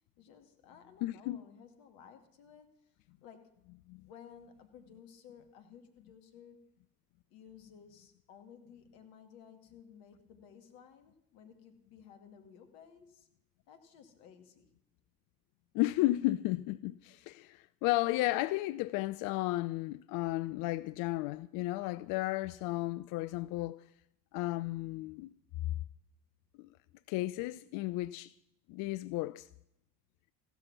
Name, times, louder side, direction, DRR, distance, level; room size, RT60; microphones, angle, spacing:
voice 1, 0.2-3.5 4.0-6.7 7.3-13.3 13.7-14.7, left 7 dB, 60° left, 2.3 m, -56 dB
voice 2, 1.0-1.4 3.9-4.0 15.7-23.8 24.3-25.3 25.6-25.7 26.6-26.7 27.1-28.3 28.7-29.5, left 18 dB, 45° left, 0.5 m, -33 dB
16.0 x 12.5 x 6.0 m
figure-of-eight pair, 65°, 49 cm